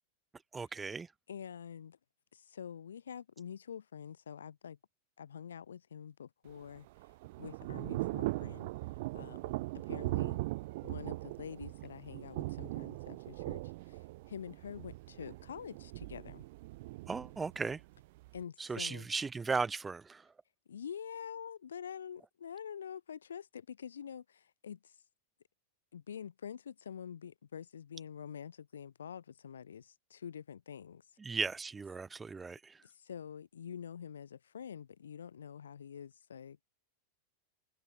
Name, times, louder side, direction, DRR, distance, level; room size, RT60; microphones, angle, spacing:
voice 1, 0.5-1.1 17.1-17.8 18.6-20.2 31.2-32.8, right 4 dB, 15° right, 0.8 m, -36 dB
voice 2, 1.3-2.0 2.3-4.8 5.2-6.9 7.4-8.7 9.1-9.5 9.8-10.4 10.8-16.4 18.3-19.1 20.7-24.9 25.9-31.0 32.8-36.6, left 8 dB, 65° left, 2.5 m, -46 dB
Thunder / Rain, 6.5-18.4, right 20 dB, 50° right, 0.3 m, -40 dB
figure-of-eight pair, 90°, 0 cm